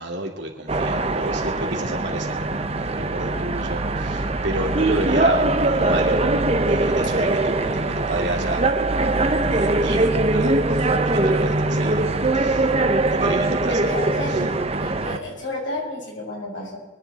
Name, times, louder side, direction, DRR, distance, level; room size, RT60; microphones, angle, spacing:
voice 1, 0.0-6.2 6.7-8.7 9.5-12.1 12.3-12.7 13.1-14.0 14.2-14.6, right 2 dB, 60° right, 2 dB, 2.8 m, -30 dB
sound 1, 0.7-15.2, right 2 dB, 30° right, 0.9 m, -22 dB
voice 2, 7.2-7.6 11.7-12.1 13.7-14.4 14.8-16.8, left 2 dB, 65° left, -2 dB, 6.4 m, -32 dB
24.0 x 11.0 x 4.2 m, 1.2 s
head